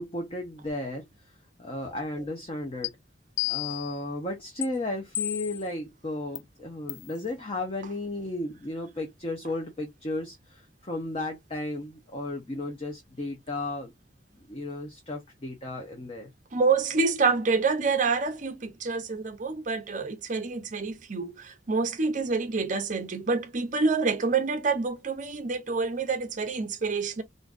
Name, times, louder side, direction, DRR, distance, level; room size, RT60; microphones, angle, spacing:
voice 1, 0.0-2.9 3.5-13.9 14.3-16.3, left 2 dB, 30° left, 0.7 m, -34 dB
sound 1, 2.8-2.9 3.4-4.0 4.6-4.7 5.2-5.7 6.4-6.5 6.9-7.1, left 14 dB, 85° left, 0.3 m, -31 dB
voice 2, 16.5-27.2, right 4 dB, 40° right, 0.6 m, -27 dB
3.6 x 2.6 x 2.4 m
head